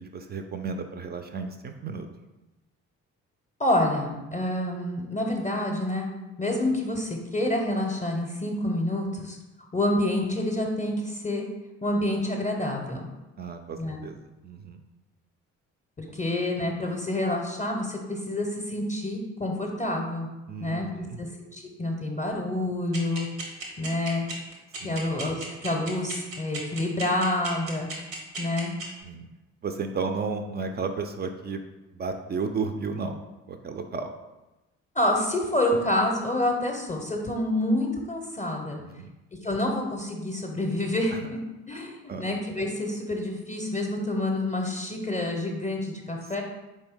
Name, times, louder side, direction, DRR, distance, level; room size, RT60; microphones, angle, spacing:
voice 1, 0.0-2.1 13.4-14.8 20.5-21.2 24.8-25.0 29.0-29.3 29.6-31.6 31.9-33.2 33.5-34.1 38.8-39.1 41.1-41.2 41.7-42.3, right 4 dB, 25° right, 6 dB, 0.4 m, -33 dB
voice 2, 3.6-6.1 6.4-9.4 9.7-11.5 11.8-13.1 13.8-14.0 16.0-20.3 20.6-20.9 21.2-23.3 23.8-24.3 24.8-27.9 28.4-28.7 34.9-38.8 39.4-41.4 41.7-46.4, left 1 dB, 20° left, 1 dB, 0.6 m, -28 dB
sound 1, 22.9-29.0, right 3 dB, 85° right, 0.8 m, -35 dB
4.3 x 3.1 x 3.5 m, 1.0 s
figure-of-eight pair, 45°, 39 cm